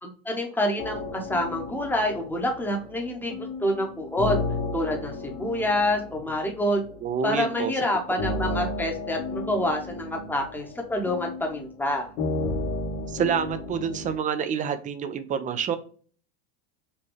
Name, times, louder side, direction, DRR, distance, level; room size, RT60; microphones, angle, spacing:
voice 1, 0.0-4.4 4.7-6.8 7.2-12.1, left 1 dB, 5° left, 2 dB, 1.0 m, -27 dB
sound 1, 0.8-14.2, left 2 dB, 60° left, 1.4 m, -34 dB
voice 2, 7.0-7.7 13.1-15.8, right 7 dB, 20° right, 11 dB, 0.5 m, -27 dB
5.4 x 2.2 x 3.1 m, 0.42 s
supercardioid pair, 120°, 35 cm